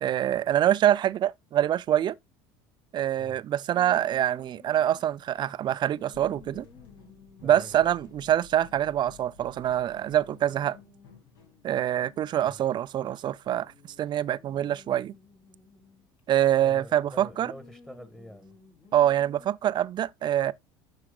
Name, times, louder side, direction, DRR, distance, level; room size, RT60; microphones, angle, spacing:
voice 1, 0.0-2.1 2.9-6.7 7.4-10.8 11.6-13.7 14.0-15.1 16.3-17.5 18.9-20.5, right 11 dB, 40° right, 0.4 m, -25 dB
sound 1, 3.7-5.4 5.9-8.8 9.1-9.2 9.4-12.9 13.4-16.2 17.2-19.5, left 3 dB, 45° left, 2.8 m, -56 dB
sound 2, 6.1-12.8, left 6 dB, 80° left, 2.2 m, -54 dB
voice 2, 7.4-7.7 12.4-12.6 16.6-18.5, equal, 5° left, 1.5 m, -46 dB
11.5 x 4.9 x 2.2 m
hypercardioid pair, 75°, 12 cm